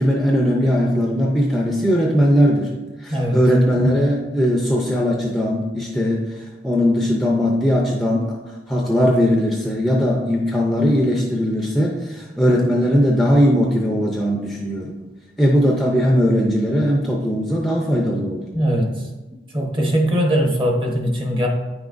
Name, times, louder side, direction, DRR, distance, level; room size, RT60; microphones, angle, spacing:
voice 1, 0.0-2.7 3.0-15.0 15.4-18.5, equal, ahead, -1 dB, 0.5 m, -19 dB
voice 2, 3.1-3.4 18.5-19.1 19.5-21.5, equal, 25° right, 1 dB, 0.9 m, -20 dB
9.1 x 6.0 x 2.5 m, 1.2 s
head